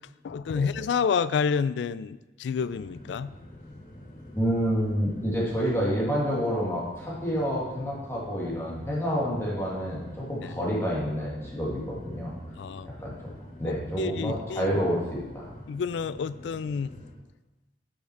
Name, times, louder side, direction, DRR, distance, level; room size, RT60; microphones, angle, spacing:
voice 1, 0.2-3.3 10.4-10.5 12.6-12.9 13.6-14.7 15.7-16.9, left 6 dB, 80° left, 16 dB, 0.3 m, -29 dB
sound 1, 2.6-17.2, left 1 dB, 50° left, 1.1 m, -47 dB
voice 2, 4.3-12.3 12.9-13.1 13.6-15.5, equal, 15° left, -6 dB, 2.1 m, -28 dB
6.4 x 5.9 x 6.0 m, 1.1 s
head